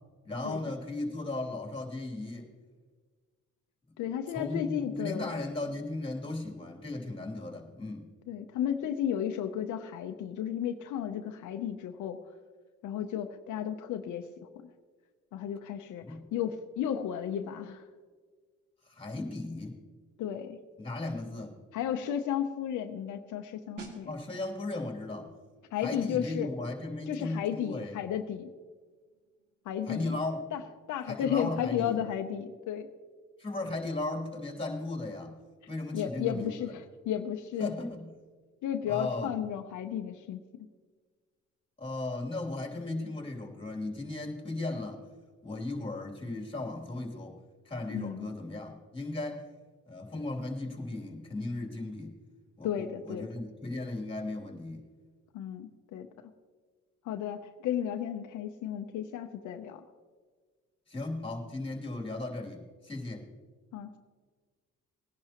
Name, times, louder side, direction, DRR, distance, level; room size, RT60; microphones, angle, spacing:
voice 1, 0.2-2.5 4.3-8.1 16.0-16.2 18.9-19.8 20.8-21.6 24.1-25.3 25.8-27.9 29.9-30.4 31.1-32.0 33.4-35.4 35.7-36.6 37.6-38.1 38.9-39.3 41.8-45.0 45.4-47.4 47.6-49.5 49.9-52.2 52.6-54.9 60.9-63.3, left 2 dB, 20° left, 0 dB, 2.9 m, -36 dB
voice 2, 4.0-5.3 8.3-12.2 12.8-14.3 14.6-14.7 15.3-17.8 20.2-20.6 21.7-24.1 25.7-26.5 27.1-28.5 29.7-30.2 30.5-30.6 30.9-32.9 35.9-37.7 38.6-40.4 47.9-48.3 52.6-53.3 55.3-56.1 57.0-59.8 63.7-64.0, left 9 dB, 80° left, 6 dB, 0.8 m, -33 dB
sound 1, 23.8-34.3 34.5-34.8, right 4 dB, 85° right, 2.2 m, -56 dB
19.5 x 10.5 x 3.0 m, 1.5 s
cardioid pair, 90°, 30 cm